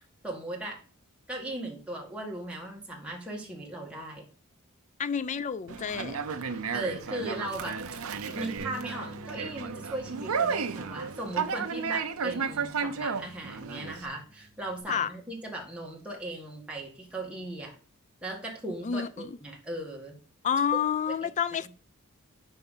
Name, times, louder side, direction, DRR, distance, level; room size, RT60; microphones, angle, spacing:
voice 1, 0.2-0.8 1.3-4.3 6.7-17.8 18.2-20.2 20.7-20.8 21.6-21.7, right 1 dB, 5° right, 1.7 m, -38 dB
voice 2, 5.0-6.2 14.9-15.1 18.8-19.4 20.4-21.7, left 7 dB, 35° left, 0.3 m, -29 dB
Conversation, 5.7-14.1, right 6 dB, 75° right, 0.7 m, -33 dB
Bass guitar, 8.6-14.8, equal, 45° right, 1.4 m, -50 dB
5.4 x 4.5 x 5.5 m
head